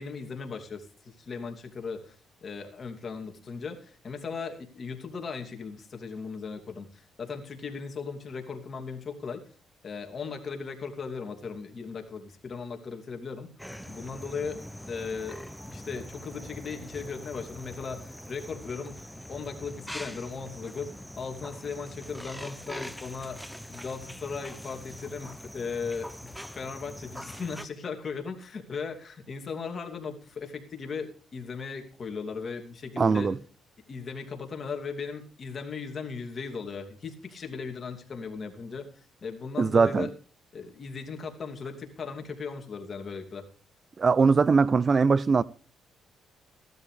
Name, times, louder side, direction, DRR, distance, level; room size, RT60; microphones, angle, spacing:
voice 1, 0.0-2.1 2.4-9.4 9.8-13.5 13.9-14.6 14.9-15.4 15.7-33.3 33.9-38.9 39.2-40.1 40.5-43.5, left 5 dB, 45° left, 2.8 m, -37 dB
sound 1, 13.6-27.7, equal, ahead, 0.9 m, -43 dB
voice 2, 33.0-33.4 39.6-40.1 44.0-45.4, right 4 dB, 40° right, 0.5 m, -21 dB
16.0 x 12.5 x 3.4 m
cardioid pair, 90°, 0 cm